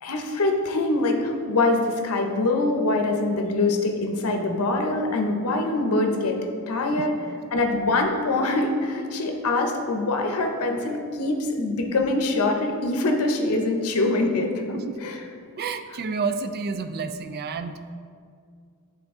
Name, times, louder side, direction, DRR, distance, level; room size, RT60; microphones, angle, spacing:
voice 1, 0.0-6.4 6.7-7.1 7.5-15.2, left 2 dB, 70° left, 3 dB, 0.6 m, -24 dB
voice 2, 15.6-18.0, right 4 dB, 45° right, 9 dB, 0.3 m, -30 dB
8.7 x 3.8 x 3.6 m, 2.2 s
head